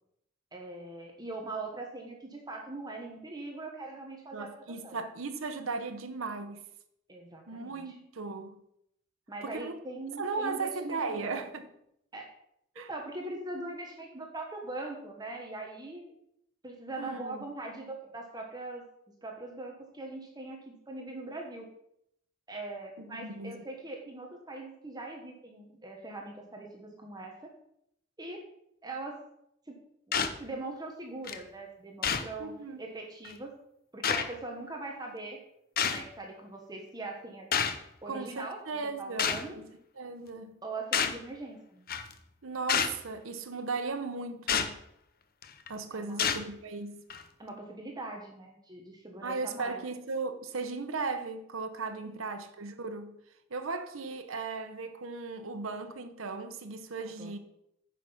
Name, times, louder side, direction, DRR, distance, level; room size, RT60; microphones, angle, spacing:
voice 1, 0.5-5.0 7.1-7.9 9.3-11.4 12.1-12.3 12.7-16.1 16.6-18.8 19.2-21.7 22.5-27.5 28.2-28.4 28.8-29.2 29.7-29.8 30.1-32.5 32.8-33.5 33.9-35.4 35.9-37.5 38.0-38.6 39.0-39.5 40.6-41.8 45.9-46.4 47.4-49.8 52.0-52.2 57.2-57.3, right 2 dB, 20° right, 1.3 m, -41 dB
voice 2, 4.3-6.6 7.5-8.5 9.4-9.8 10.2-11.7 12.8-12.9 17.0-17.4 23.0-23.6 32.4-32.8 38.1-39.6 40.0-40.6 42.4-44.8 45.7-47.0 49.2-53.2 53.5-57.4, right 4 dB, 80° right, 0.9 m, -37 dB
sound 1, 30.1-30.4 31.3-31.4 32.0-32.3 33.2-33.3 34.0-34.2 35.8-36.0 37.5-37.8 39.2-39.4 40.9-41.2 41.9-42.1 42.7-43.0 44.5-44.7 45.4-45.7 46.2-46.4 47.1-47.2, left 7 dB, 45° left, 0.8 m, -28 dB
9.5 x 5.9 x 5.7 m
head